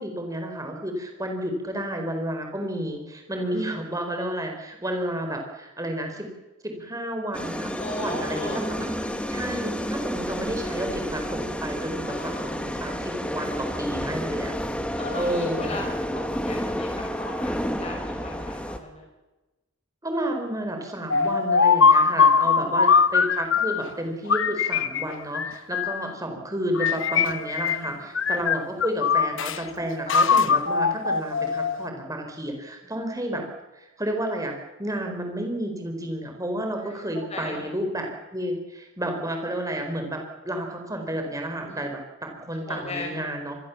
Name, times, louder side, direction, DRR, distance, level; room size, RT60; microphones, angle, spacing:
voice 1, 0.0-6.3 6.6-7.7 8.0-8.9 9.3-14.5 14.9-15.8 20.0-33.4 33.7-34.5 34.8-43.6, right 1 dB, 15° right, 3 dB, 4.5 m, -31 dB
voice 2, 3.3-3.7 7.7-8.6 10.3-10.5 12.0-12.7 15.0-19.0 22.4-22.7 27.8-28.0 30.1-30.2 36.7-37.0 37.3-37.7 41.6-41.8 42.7-43.2, left 1 dB, 30° left, 0 dB, 6.1 m, -37 dB
sound 1, 7.3-18.8, equal, 5° left, 1.5 m, -30 dB
sound 2, 21.1-23.9 24.3-26.1 26.7-27.9 28.1-29.6 30.1-31.9, left 5 dB, 55° left, 1.0 m, -21 dB
26.0 x 21.5 x 7.3 m, 1.1 s
head